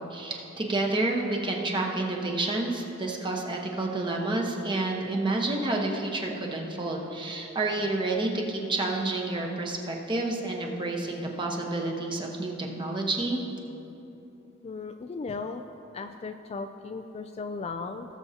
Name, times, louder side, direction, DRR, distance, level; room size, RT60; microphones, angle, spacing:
voice 1, 0.0-13.4, right 2 dB, 25° right, 0 dB, 1.1 m, -29 dB
voice 2, 14.6-15.6 15.9-18.1, left 4 dB, 30° left, 7 dB, 0.3 m, -36 dB
19.0 x 7.1 x 2.8 m, 2.9 s
head